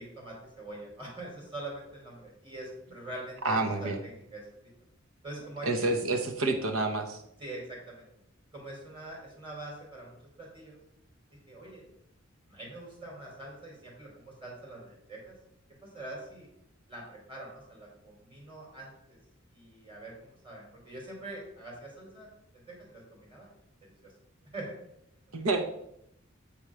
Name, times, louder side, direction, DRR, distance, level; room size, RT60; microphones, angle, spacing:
voice 1, 0.0-4.5 5.2-5.8 7.4-8.0 8.5-10.8 11.5-11.8 12.5-15.3 15.8-16.5 16.9-19.2 19.5-22.3 22.5-23.5 24.0-24.1 24.5-24.7, right 2 dB, 25° right, -3 dB, 3.1 m, -44 dB
voice 2, 3.4-4.0 5.7-7.2 25.3-25.6, right 2 dB, 80° right, 4 dB, 0.9 m, -28 dB
8.5 x 4.4 x 4.9 m, 0.77 s
head